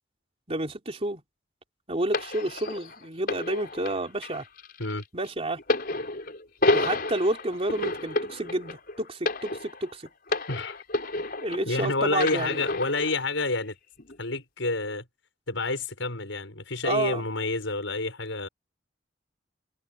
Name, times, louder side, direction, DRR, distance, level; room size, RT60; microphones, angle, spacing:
voice 1, 0.5-1.2 1.9-4.4 5.1-5.6 6.7-10.1 11.4-12.6 16.8-17.3, right 2 dB, 30° right, 3.5 m, -30 dB
sound 1, 2.1-11.8 12.2-13.2 14.0-14.1, left 2 dB, 50° left, 5.0 m, -30 dB
voice 2, 11.6-13.7 14.2-15.0 15.5-18.5, left 3 dB, 85° left, 6.4 m, -29 dB
head